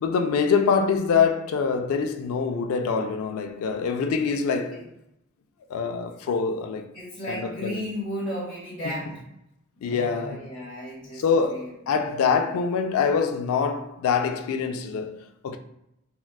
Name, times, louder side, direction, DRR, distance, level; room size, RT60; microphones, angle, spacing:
voice 1, 0.0-4.9 5.7-6.9 7.3-7.8 8.8-9.0 9.8-10.5 11.1-15.6, left 5 dB, 90° left, 0.3 m, -25 dB
voice 2, 6.9-9.2 9.8-11.7, equal, 40° left, 0.8 m, -34 dB
3.7 x 2.2 x 2.2 m
head